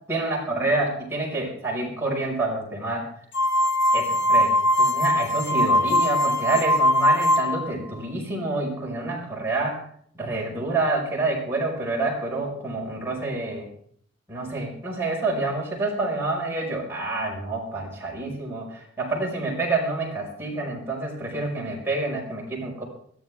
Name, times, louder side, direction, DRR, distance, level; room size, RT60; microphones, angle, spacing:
voice 1, 0.1-3.1 3.9-9.8 10.1-13.7 14.3-22.8, right 2 dB, 10° right, -5 dB, 5.8 m, -28 dB
sound 1, 3.3-7.7, left 1 dB, 70° left, 1.8 m, -21 dB
22.0 x 14.5 x 3.7 m, 0.63 s
head